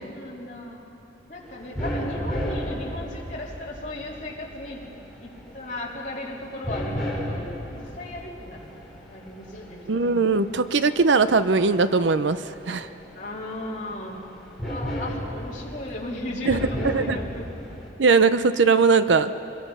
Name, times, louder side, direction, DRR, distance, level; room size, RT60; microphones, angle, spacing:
voice 1, 0.0-0.8 1.3-4.8 5.2-7.5 7.8-8.7 9.1-10.2 13.1-14.2 14.6-17.5, left 1 dB, 40° left, -4 dB, 3.3 m, -36 dB
sound 1, 1.4-17.9, equal, ahead, 3.5 m, -35 dB
voice 2, 9.9-12.4 12.7-12.9 16.5-16.6 16.9-17.2 18.0-19.3, right 4 dB, 75° right, 12 dB, 0.6 m, -20 dB
25.0 x 21.0 x 5.6 m, 2.8 s
head